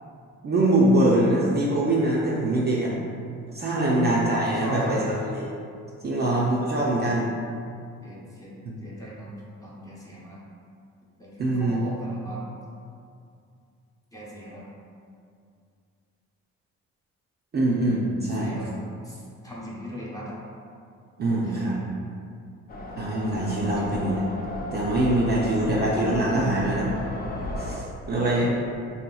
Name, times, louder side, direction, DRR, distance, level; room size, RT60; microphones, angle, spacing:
voice 1, 0.4-2.9 3.5-5.5 6.0-7.3 8.7-8.8 11.4-11.9 17.5-18.5 21.2-21.8 23.0-24.2 24.7-26.9 27.6-28.4, right 1 dB, 35° right, -5 dB, 0.5 m, -23 dB
voice 2, 3.8-4.1 4.5-5.1 6.2-7.1 8.0-8.5 8.8-10.4 11.2-12.4 14.1-14.6 18.3-18.7 19.0-20.3 21.4-22.0 23.8-24.2 25.4-25.7 28.3-28.4, equal, 10° left, -6 dB, 0.8 m, -39 dB
sound 1, 22.7-27.8, left 1 dB, 30° left, 0.4 m, -34 dB
3.4 x 2.8 x 2.3 m, 2.4 s
cardioid pair, 90°, 30 cm